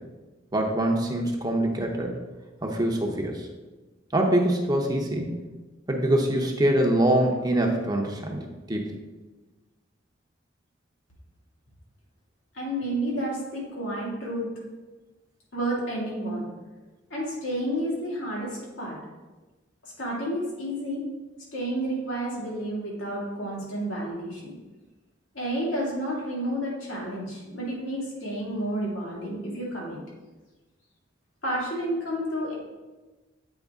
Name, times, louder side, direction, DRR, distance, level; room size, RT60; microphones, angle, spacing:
voice 1, 0.5-2.2 2.6-3.5 4.1-5.3 5.9-9.0, right 1 dB, 20° right, 1 dB, 0.7 m, -24 dB
voice 2, 12.5-14.5 15.5-16.5 17.1-19.0 19.8-21.0 21.5-24.5 25.3-30.0 31.4-32.5, right 1 dB, 90° left, -5 dB, 2.4 m, -30 dB
8.0 x 4.7 x 3.6 m, 1.2 s
head